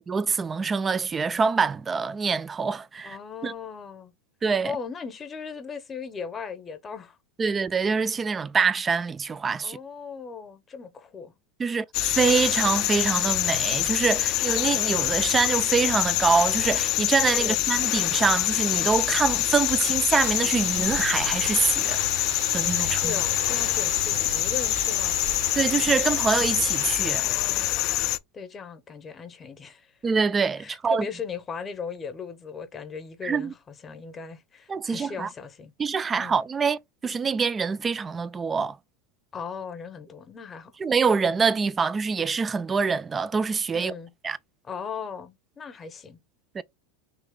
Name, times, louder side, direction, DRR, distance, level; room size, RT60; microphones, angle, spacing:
voice 1, 0.1-3.2 3.4-3.5 4.4-4.7 7.4-9.8 11.6-22.0 22.5-23.1 25.6-27.2 30.0-31.1 33.2-33.5 34.7-35.3 35.8-38.8 40.8-43.9 44.2-44.4 46.5-46.6, right 5 dB, 20° right, 0.3 m, -25 dB
voice 2, 3.0-4.1 4.6-7.2 9.6-11.3 17.4-17.6 22.8-25.2 27.2-27.7 28.3-29.9 30.6-33.6 33.8-35.7 36.2-36.4 39.3-40.7 43.7-44.1 44.6-46.2, left 6 dB, 25° left, 0.8 m, -38 dB
sound 1, 11.9-28.2, left 15 dB, 55° left, 0.4 m, -25 dB
sound 2, 20.1-27.0, right 10 dB, 65° right, 0.6 m, -37 dB
3.1 x 2.9 x 3.6 m
hypercardioid pair, 100°, 0 cm